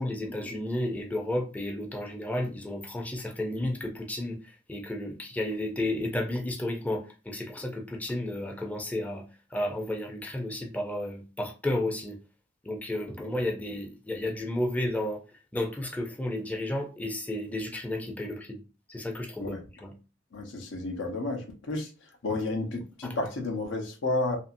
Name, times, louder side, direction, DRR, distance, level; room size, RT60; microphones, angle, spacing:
voice 1, 0.0-9.2 9.5-12.2 12.6-15.2 15.5-18.6 18.9-19.6 19.8-19.9, left 1 dB, 10° left, 0.4 m, -32 dB
voice 2, 20.3-21.9 22.2-24.4, left 2 dB, 90° left, 0.8 m, -31 dB
2.8 x 2.7 x 2.5 m
head